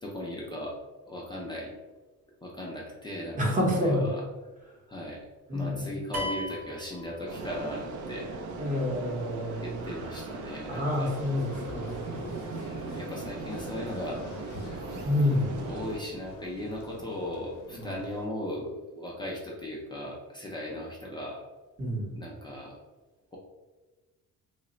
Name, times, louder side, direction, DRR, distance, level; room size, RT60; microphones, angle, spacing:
voice 1, 0.0-0.8 1.0-1.7 2.4-4.2 4.9-5.2 5.5-8.4 9.6-11.1 12.5-14.2 15.6-21.4 22.1-22.8 23.3-23.4, left 1 dB, 15° left, -4 dB, 0.4 m, -37 dB
voice 2, 3.4-4.1 5.5-6.0 8.6-9.8 10.7-12.3 15.0-15.6 17.7-17.9 21.8-22.2, left 1 dB, 25° right, -2 dB, 0.8 m, -28 dB
sound 1, 6.1-7.8, equal, 55° right, 0.9 m, -37 dB
sound 2, 7.3-16.0, right 3 dB, 80° right, 0.5 m, -39 dB
sound 3, 11.2-18.3, left 2 dB, 60° left, 0.7 m, -45 dB
3.1 x 2.1 x 3.7 m, 1.2 s
cardioid pair, 165°, 29 cm